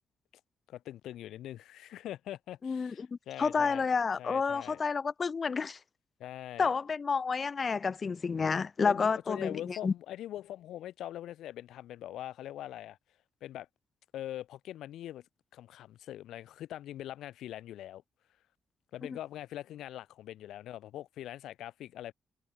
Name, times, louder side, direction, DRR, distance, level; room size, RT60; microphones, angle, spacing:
voice 1, 0.7-3.8 4.2-4.8 6.2-6.7 8.8-13.0 13.4-13.7 14.1-15.2 15.5-18.0 18.9-22.1, left 12 dB, 90° left, 1.4 m, -42 dB
voice 2, 2.6-5.8 6.6-9.9 19.1-19.2, left 5 dB, 35° left, 0.6 m, -30 dB
cardioid pair, 110°, 0 cm